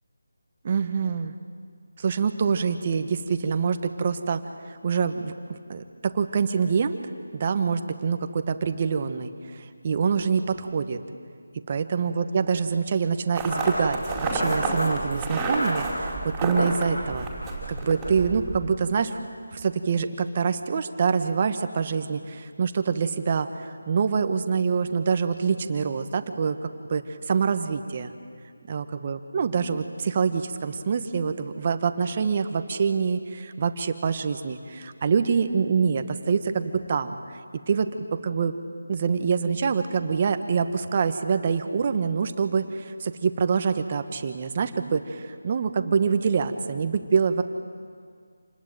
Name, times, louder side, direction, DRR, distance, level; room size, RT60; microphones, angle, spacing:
voice 1, 0.6-1.3 2.0-7.0 7.3-11.0 11.7-14.0 14.3-17.3 17.7-19.2 19.5-28.1 28.7-37.2 37.7-38.5 38.9-47.4, right 5 dB, 30° right, 8 dB, 1.3 m, -25 dB
sound 1, 13.3-18.7, right 2 dB, 5° right, 5.1 m, -28 dB
27.5 x 20.0 x 9.1 m, 2.1 s
figure-of-eight pair, 170°, 0 cm